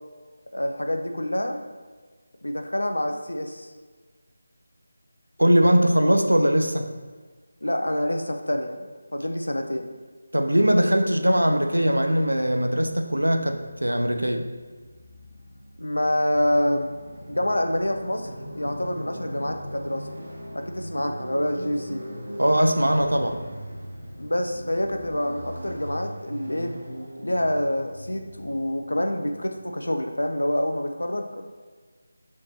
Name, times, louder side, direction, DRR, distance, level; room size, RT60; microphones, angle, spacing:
voice 1, 0.5-1.6 2.4-3.7 7.6-8.8 9.1-9.9 15.8-17.0 17.3-18.3 18.6-20.1 20.5-22.0 24.2-26.7 27.2-31.4, left 1 dB, 80° left, 5 dB, 0.4 m, -27 dB
voice 2, 5.4-6.9 10.3-14.5 22.4-23.4, equal, 85° right, 5 dB, 0.4 m, -21 dB
Motorcycle, 13.3-29.7, equal, 50° right, 1.1 m, -40 dB
3.2 x 3.2 x 4.0 m, 1.4 s
figure-of-eight pair, 160°, 0 cm